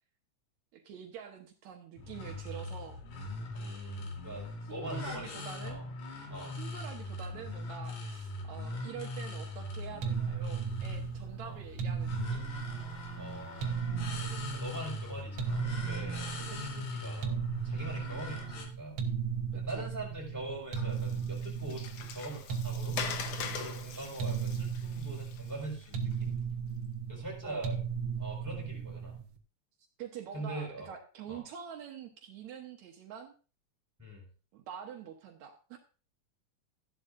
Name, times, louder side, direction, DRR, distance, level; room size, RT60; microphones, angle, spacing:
voice 1, 0.7-3.0 4.7-5.8 6.5-12.4 17.9-18.2 19.5-19.9 27.4-27.6 30.0-33.3 34.5-35.8, right 8 dB, 75° right, 3 dB, 2.4 m, -46 dB
sound 1, 2.0-18.6, left 2 dB, 80° left, 3.6 m, -41 dB
voice 2, 3.5-5.9 6.3-6.6 11.4-11.6 13.2-13.8 14.5-19.0 19.7-23.0 23.5-26.3 27.1-27.8 28.2-29.2 30.3-30.9 31.3-31.4 34.0-34.3, right 1 dB, 5° right, -3 dB, 5.3 m, -43 dB
sound 2, 10.0-29.3, right 6 dB, 55° right, 1.7 m, -36 dB
Water, 20.7-26.1, left 7 dB, 65° left, 1.9 m, -42 dB
13.5 x 11.0 x 2.6 m, 0.36 s
omnidirectional pair, 3.3 m